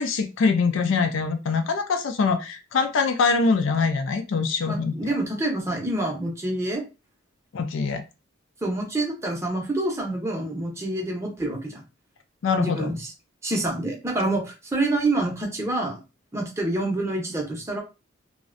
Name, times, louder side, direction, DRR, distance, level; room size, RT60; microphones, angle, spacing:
voice 1, 0.0-4.9 7.5-8.0 12.4-12.9, left 4 dB, 60° left, 8 dB, 0.4 m, -23 dB
voice 2, 4.6-6.8 8.6-11.8 12.6-13.1 13.4-16.0 16.3-17.8, right 2 dB, 15° right, 0 dB, 0.6 m, -27 dB
2.5 x 2.0 x 2.5 m, 0.29 s
head